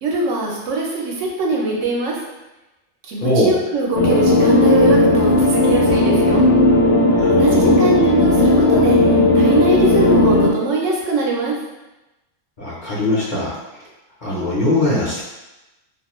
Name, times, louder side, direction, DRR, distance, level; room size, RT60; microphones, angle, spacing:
voice 1, 0.0-2.1 3.1-6.4 7.3-9.0 9.3-11.5, right 2 dB, 80° right, -2 dB, 1.0 m, -22 dB
voice 2, 3.2-3.5 7.2-7.8 12.6-13.5 14.2-15.2, left 1 dB, 45° left, -8 dB, 0.8 m, -20 dB
sound 1, 3.9-10.5, left 2 dB, 75° left, 0.9 m, -14 dB
2.5 x 2.2 x 3.0 m, 1.0 s
omnidirectional pair, 1.3 m